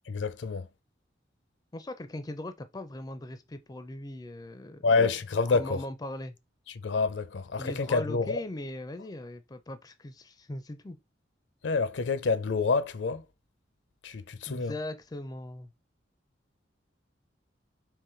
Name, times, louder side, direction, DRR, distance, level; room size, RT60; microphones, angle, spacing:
voice 1, 0.1-0.7 4.8-5.8 6.8-8.4 11.6-13.2 14.0-14.7, left 4 dB, 75° left, 0.5 m, -27 dB
voice 2, 1.7-4.9 5.5-6.4 7.6-11.0 14.5-15.7, left 1 dB, 20° left, 0.4 m, -39 dB
3.8 x 3.0 x 4.3 m
head